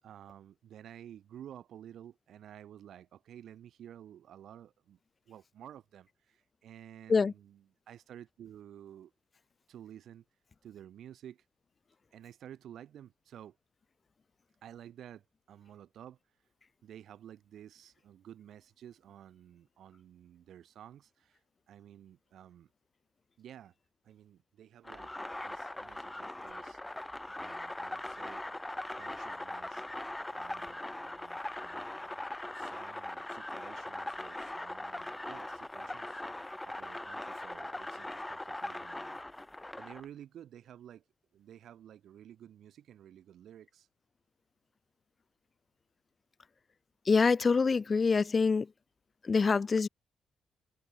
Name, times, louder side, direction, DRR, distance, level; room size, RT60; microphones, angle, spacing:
voice 1, 0.0-5.0 5.3-9.1 9.7-10.3 10.6-11.5 12.1-13.6 14.6-16.2 16.8-22.7 23.4-23.7 24.0-25.1 25.4-26.8 27.4-28.5 29.0-29.8 30.3-32.2 32.5-36.2 36.6-39.2 39.8-41.0 41.3-43.9, right 10 dB, 70° right, 3.7 m, -52 dB
sound 1, 24.8-40.0, left 1 dB, 10° left, 2.5 m, -41 dB
voice 2, 47.1-48.7 49.2-49.9, left 4 dB, 35° left, 0.8 m, -25 dB
cardioid pair, 90°, 0 cm